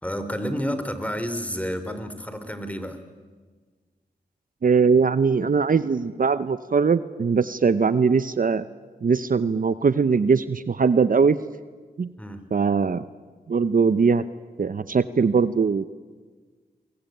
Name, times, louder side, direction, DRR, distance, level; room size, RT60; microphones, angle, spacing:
voice 1, 0.0-3.0 12.2-12.4, equal, 10° left, 10 dB, 3.5 m, -30 dB
voice 2, 4.6-8.6 9.0-11.4 12.0-12.1 12.5-13.0 13.5-14.2 14.6-15.9, right 5 dB, 55° right, 14 dB, 0.8 m, -21 dB
23.5 x 21.5 x 9.2 m, 1.4 s
cardioid pair, 55°, 17 cm